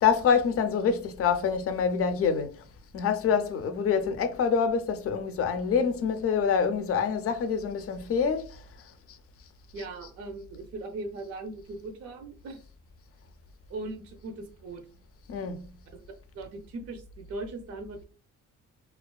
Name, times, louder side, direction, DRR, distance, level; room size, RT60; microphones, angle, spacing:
voice 1, 0.0-2.5 2.9-8.6 9.8-9.9 15.3-15.7, left 6 dB, 50° left, 0.5 m, -26 dB
voice 2, 9.7-12.6 13.7-14.8 15.9-16.0 16.3-18.0, right 2 dB, 55° right, 0.5 m, -39 dB
2.3 x 2.3 x 2.2 m
cardioid pair, 90°, 30 cm